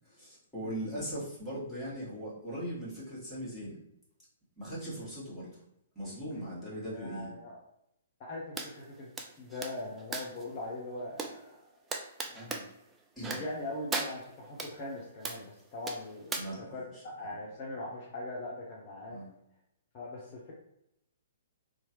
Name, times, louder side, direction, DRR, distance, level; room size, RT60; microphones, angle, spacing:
voice 1, 0.0-3.8 4.6-5.6 5.9-7.3 12.3-12.6 13.1-13.4 16.3-17.0 19.1-19.3, equal, ahead, -12 dB, 1.5 m, -40 dB
voice 2, 6.7-7.6 8.2-9.1 9.4-11.6 12.3-12.5 13.3-15.4 15.7-19.2 19.9-20.5, left 2 dB, 35° left, -5 dB, 0.7 m, -41 dB
sound 1, 8.6-8.7 9.2-10.4 11.2-11.3 11.9-12.6 13.2-13.6 13.9-14.7 15.2-15.4 15.9-16.4, right 3 dB, 15° right, 0.3 m, -37 dB
2.9 x 2.3 x 3.0 m, 0.79 s
figure-of-eight pair, 120°, 0 cm